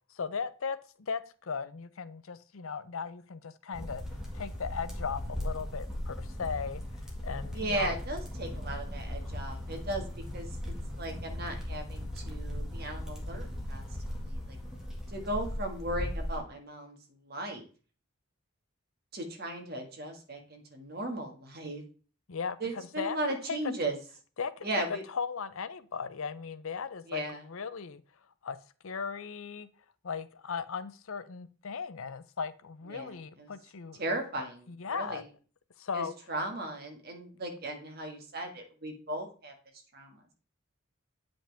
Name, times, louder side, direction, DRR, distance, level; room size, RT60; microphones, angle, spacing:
voice 1, 0.1-4.0 4.3-6.8 7.2-7.9 22.3-22.6 23.0-23.2 23.5-23.6 24.4-24.7 25.1-27.2 27.5-28.0 28.4-28.6 28.8-29.7 30.0-34.0 34.7-35.2 35.8-36.1, left 5 dB, 75° left, 0.6 m, -37 dB
sound 1, 3.7-16.4, left 1 dB, 5° right, 1.7 m, -38 dB
voice 2, 7.5-14.0 14.2-14.6 15.1-17.7 19.1-21.8 22.6-24.0 24.6-25.0 27.1-27.4 32.9-33.5 34.0-35.3 35.9-40.3, right 1 dB, 45° right, 1.7 m, -37 dB
8.8 x 5.2 x 3.4 m
head